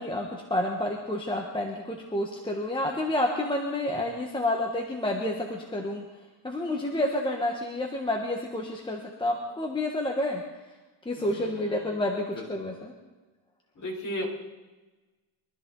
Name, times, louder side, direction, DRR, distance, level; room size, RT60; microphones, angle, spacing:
voice 1, 0.0-6.0 6.4-10.4 11.0-12.9, left 1 dB, 10° left, 0 dB, 1.4 m, -29 dB
voice 2, 11.3-11.9 12.3-12.4 13.8-14.3, equal, 35° left, -5 dB, 5.0 m, -35 dB
23.5 x 13.5 x 4.0 m, 1.2 s
cardioid pair, 160°, 47 cm